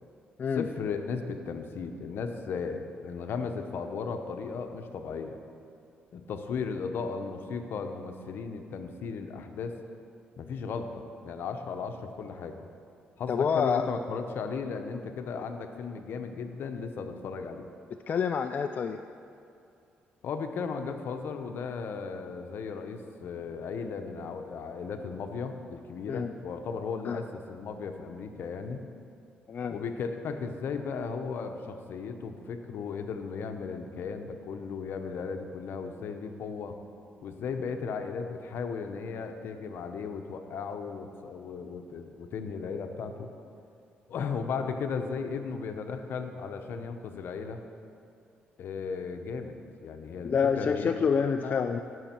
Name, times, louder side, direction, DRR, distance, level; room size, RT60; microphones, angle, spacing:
voice 1, 0.5-5.4 6.1-9.8 10.4-12.7 13.2-17.7 20.2-28.8 29.7-36.8 37.2-43.3 44.1-47.6 48.6-50.9 51.4-51.8, left 5 dB, 70° left, 6 dB, 0.9 m, -36 dB
voice 2, 13.3-13.9 18.1-19.0 26.1-26.3 27.0-27.2 29.5-29.8 50.2-51.8, left 6 dB, 50° left, 6 dB, 0.4 m, -27 dB
15.5 x 6.4 x 4.5 m, 2.5 s
cardioid pair, 85°, 4 cm